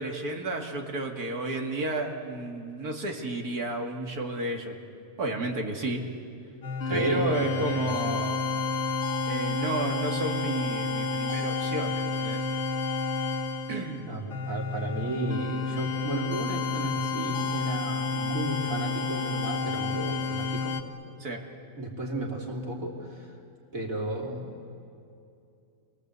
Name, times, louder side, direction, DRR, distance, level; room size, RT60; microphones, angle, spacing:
voice 1, 0.0-4.8 5.2-6.0 6.9-8.4 9.2-12.4 13.7-14.1 21.2-21.4, right 2 dB, 90° right, 2 dB, 2.8 m, -32 dB
sound 1, 6.6-20.8, left 4 dB, 45° left, 1.5 m, -30 dB
voice 2, 6.8-8.2 14.1-20.8 21.8-23.3 23.7-24.4, right 1 dB, 65° right, -1 dB, 4.0 m, -33 dB
29.5 x 22.5 x 8.2 m, 2.5 s
omnidirectional pair, 1.6 m